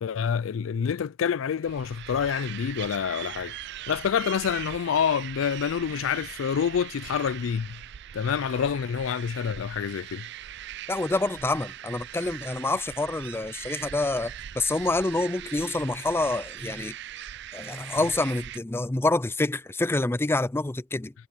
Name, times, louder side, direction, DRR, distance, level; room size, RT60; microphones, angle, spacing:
voice 1, 0.0-3.6 3.9-7.8 8.1-10.3, left 7 dB, 75° left, 0.4 m, -27 dB
sound 1, 1.6-18.6, right 11 dB, 60° right, 0.4 m, -41 dB
voice 2, 10.9-17.0 17.5-21.1, left 2 dB, 10° left, 0.4 m, -27 dB
head